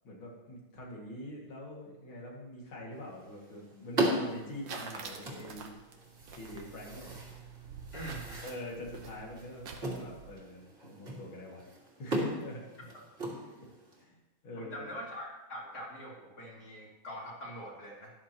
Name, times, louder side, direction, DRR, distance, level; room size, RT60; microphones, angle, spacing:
voice 1, 0.0-5.8 6.3-7.1 8.4-11.6 12.0-12.7 14.0-14.1 14.4-14.8, left 1 dB, 80° left, -3 dB, 3.1 m, -44 dB
sound 1, 2.9-14.0, right 1 dB, 30° right, 2.5 m, -38 dB
sound 2, 4.3-10.3, right 5 dB, 70° right, 1.7 m, -47 dB
voice 2, 7.9-8.5 14.6-18.1, equal, 50° left, -5 dB, 3.5 m, -43 dB
13.0 x 11.5 x 3.0 m, 1.0 s
omnidirectional pair, 2.2 m